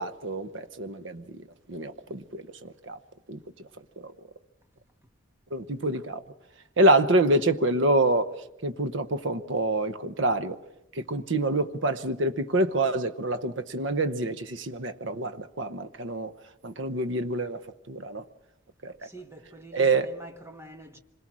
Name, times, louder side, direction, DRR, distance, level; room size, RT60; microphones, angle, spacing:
voice 1, 0.0-1.4 1.7-3.0 3.3-3.7 4.0-4.1 5.5-6.2 6.8-8.4 8.6-10.6 10.9-16.3 16.6-17.6 17.9-18.2 18.8-18.9 19.7-20.1, right 2 dB, 75° right, 0.9 m, -26 dB
voice 2, 19.0-21.0, right 2 dB, 15° right, 1.4 m, -46 dB
26.0 x 21.5 x 6.2 m
head